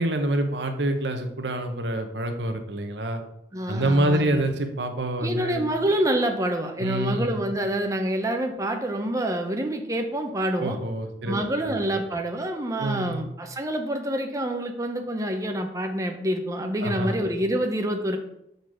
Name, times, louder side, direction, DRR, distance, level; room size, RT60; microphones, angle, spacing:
voice 1, 0.0-3.2 3.7-5.6 6.8-7.4 10.6-11.4 12.8-13.2 16.8-17.2, right 1 dB, 85° right, 6 dB, 1.0 m, -26 dB
voice 2, 3.5-4.4 5.2-10.8 11.3-18.2, right 1 dB, 20° right, 4 dB, 0.7 m, -27 dB
6.7 x 4.0 x 6.2 m, 0.79 s
head